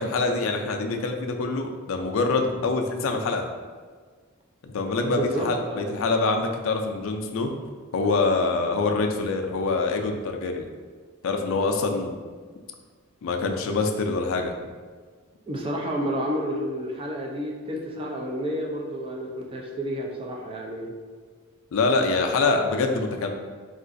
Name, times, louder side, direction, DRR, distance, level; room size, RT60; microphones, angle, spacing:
voice 1, 0.0-3.5 4.6-7.5 7.9-10.7 11.2-12.2 13.2-14.5 21.7-23.3, left 3 dB, 65° left, 4 dB, 0.3 m, -25 dB
voice 2, 5.0-5.9 15.5-20.9, equal, 25° right, -1 dB, 0.4 m, -30 dB
3.7 x 2.4 x 2.5 m, 1.6 s
head